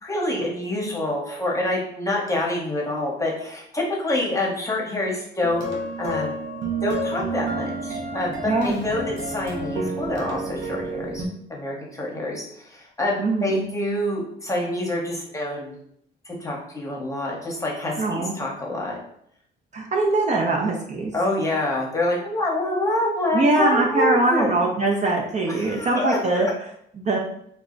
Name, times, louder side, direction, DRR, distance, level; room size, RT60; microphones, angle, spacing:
voice 1, 0.0-5.7 6.0-6.4 6.8-11.2 11.5-15.7 16.2-19.0 21.1-24.6 25.5-26.5, left 1 dB, 15° left, -2 dB, 0.9 m, -26 dB
sound 1, 5.4-11.3, right 2 dB, 75° right, 0.7 m, -30 dB
voice 2, 8.4-8.8 13.2-13.7 18.0-18.4 19.7-21.1 23.3-26.5 27.0-27.2, right 2 dB, 35° right, 0 dB, 0.5 m, -22 dB
2.3 x 2.0 x 3.7 m, 0.69 s
cardioid pair, 90°, 20 cm